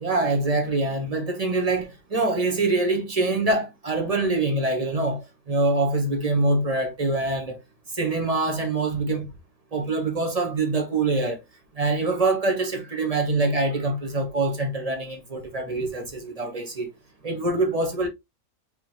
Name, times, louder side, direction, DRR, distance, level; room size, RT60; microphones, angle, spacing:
voice 1, 0.0-5.2 5.5-7.6 8.0-9.3 9.7-11.4 11.8-16.9 17.2-18.1, right 2 dB, 25° right, 1.1 m, -24 dB
5.3 x 3.3 x 2.9 m
omnidirectional pair, 1.6 m